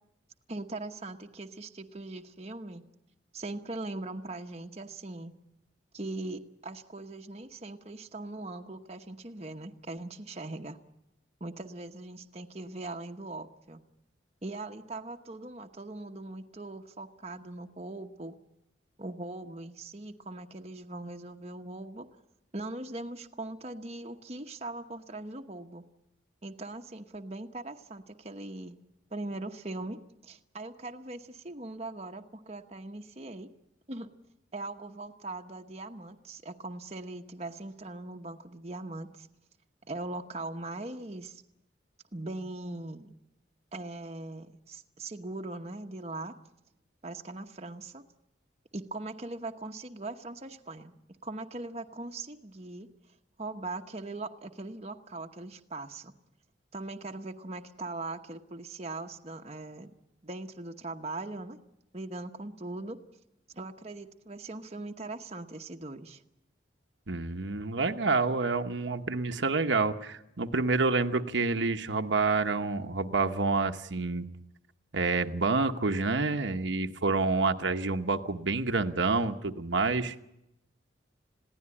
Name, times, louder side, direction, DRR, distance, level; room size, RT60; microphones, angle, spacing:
voice 1, 0.5-2.8 3.3-5.3 5.9-10.8 11.4-13.8 14.4-18.3 19.0-22.1 22.5-25.8 26.4-28.8 29.1-33.5 33.9-34.1 34.5-39.3 39.9-41.4 42.1-43.1 43.7-46.4 47.0-48.0 48.7-51.0 51.2-52.9 53.4-56.1 56.7-59.9 60.2-61.6 61.9-63.0 63.5-66.2, right 2 dB, 35° right, 4 dB, 1.0 m, -40 dB
voice 2, 67.1-74.3 74.9-80.1, right 3 dB, 75° right, 6 dB, 1.1 m, -28 dB
21.5 x 16.5 x 9.8 m, 0.87 s
head